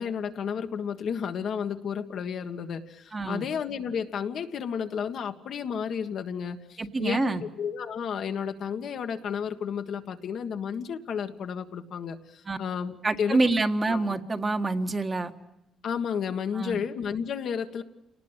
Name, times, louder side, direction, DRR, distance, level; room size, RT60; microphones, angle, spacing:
voice 1, 0.0-13.5 13.9-14.1 15.8-17.8, left 7 dB, 65° left, 6 dB, 1.6 m, -32 dB
voice 2, 3.1-3.5 6.8-7.4 12.4-12.6 13.0-15.3 16.5-16.8, right 2 dB, 30° right, 6 dB, 1.6 m, -26 dB
28.0 x 19.0 x 9.0 m, 0.93 s
cardioid pair, 90°, 0 cm